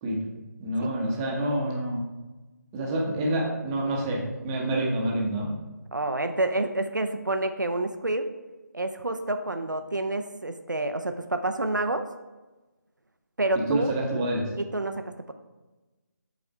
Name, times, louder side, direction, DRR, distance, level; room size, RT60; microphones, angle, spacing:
voice 1, 0.6-2.0 2.7-5.5 13.6-14.5, right 1 dB, 15° right, -3 dB, 0.9 m, -27 dB
voice 2, 5.9-8.3 8.7-12.1 13.4-13.9 14.6-15.3, right 2 dB, 85° right, 7 dB, 0.6 m, -28 dB
7.1 x 4.3 x 4.7 m, 1.2 s
figure-of-eight pair, 155°, 10 cm